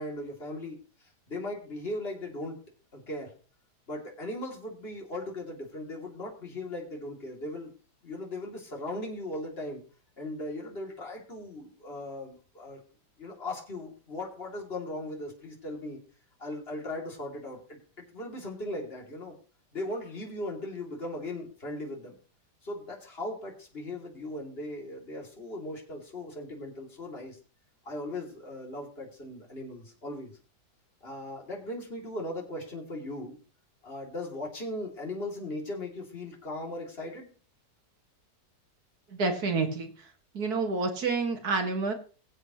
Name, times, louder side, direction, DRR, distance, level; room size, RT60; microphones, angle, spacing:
voice 1, 0.0-2.6 2.9-3.3 3.9-7.7 8.0-9.8 10.2-12.8 13.2-16.0 16.4-19.4 19.7-22.1 22.6-27.4 27.8-30.4 31.0-33.4 33.8-37.3, left 1 dB, 35° left, -1 dB, 3.0 m, -38 dB
voice 2, 39.2-39.9 40.3-41.9, right 4 dB, 65° right, 4 dB, 2.3 m, -28 dB
21.5 x 7.7 x 3.1 m, 0.38 s
omnidirectional pair, 1.8 m